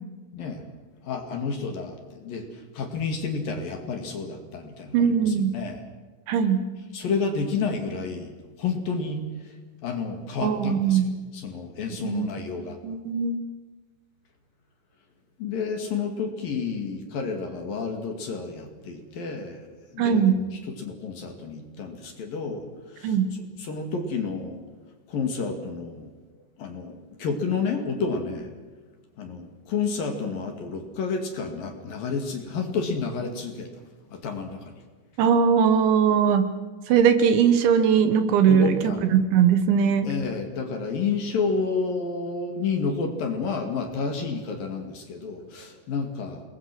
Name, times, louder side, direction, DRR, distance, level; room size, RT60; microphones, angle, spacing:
voice 1, 1.0-5.8 6.9-8.3 8.6-9.5 9.8-11.0 11.3-12.8 15.4-19.6 19.9-20.3 20.7-22.7 22.9-23.2 23.6-24.6 25.1-26.1 26.6-28.5 29.2-33.7 34.1-34.7 38.5-39.0 40.1-46.4, left 4 dB, 50° left, 4 dB, 3.5 m, -30 dB
voice 2, 4.9-5.6 6.3-6.6 10.4-11.1 12.0-12.3 12.8-13.4 20.0-20.4 23.0-23.3 35.2-36.5 36.9-40.1, right 7 dB, 70° right, 9 dB, 3.6 m, -20 dB
28.5 x 21.5 x 6.2 m, 1.3 s
omnidirectional pair, 5.8 m